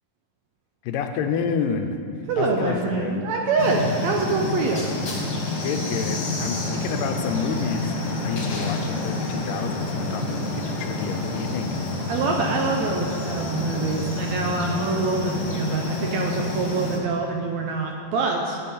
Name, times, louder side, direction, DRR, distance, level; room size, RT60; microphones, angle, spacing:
voice 1, 0.8-2.0 2.4-3.2 5.6-11.8, left 6 dB, 90° left, 6 dB, 2.4 m, -29 dB
voice 2, 2.3-4.9 12.1-18.6, right 3 dB, 75° right, 1 dB, 1.7 m, -25 dB
sound 1, 3.6-17.0, left 2 dB, 45° left, 1.4 m, -28 dB
12.0 x 8.8 x 4.2 m, 2.5 s
omnidirectional pair, 3.8 m